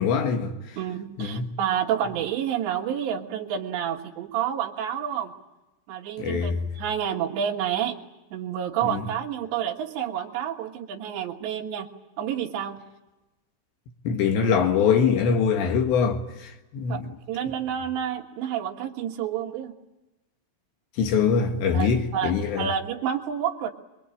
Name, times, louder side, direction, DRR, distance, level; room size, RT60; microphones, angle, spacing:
voice 1, 0.0-0.8 1.2-1.5 6.2-6.6 8.8-9.0 14.0-17.1 21.0-22.7, left 6 dB, 70° left, 3.6 m, -23 dB
voice 2, 0.8-5.3 5.9-8.0 8.3-11.9 12.2-12.8 16.9-17.0 17.3-19.8 21.7-23.7, right 9 dB, 70° right, 3.5 m, -29 dB
27.5 x 22.5 x 8.7 m
omnidirectional pair, 5.8 m